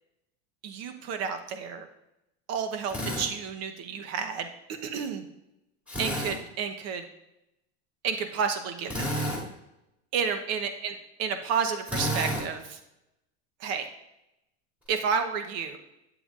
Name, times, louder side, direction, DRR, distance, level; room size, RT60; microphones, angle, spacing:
voice 1, 0.6-1.9 2.5-4.5 4.8-5.2 6.0-7.1 8.0-9.4 10.1-10.9 11.2-12.8 13.6-13.9 14.9-15.8, right 6 dB, 45° right, 8 dB, 1.0 m, -31 dB
Drill, 2.9-3.3 5.9-6.3 8.9-9.4 11.9-12.4, equal, 5° right, 2.7 m, -30 dB
8.9 x 7.8 x 2.5 m, 0.89 s
supercardioid pair, 135°, 35 cm